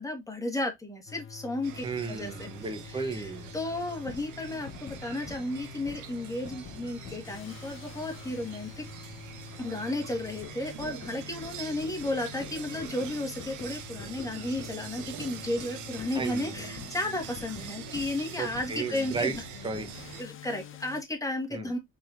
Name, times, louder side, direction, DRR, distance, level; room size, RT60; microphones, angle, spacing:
voice 1, 0.0-2.5 3.1-8.8 9.6-19.3 20.2-21.8, left 1 dB, 10° left, 1.5 m, -33 dB
sound 1, 1.1-21.0, left 9 dB, 45° left, 0.6 m, -46 dB
sound 2, 1.6-20.2, right 10 dB, 90° right, 0.6 m, -44 dB
voice 2, 1.8-3.5 16.1-16.5 18.4-19.4 19.6-20.1 21.5-21.7, right 4 dB, 15° right, 0.9 m, -34 dB
4.2 x 3.5 x 2.5 m
cardioid pair, 90°, 30 cm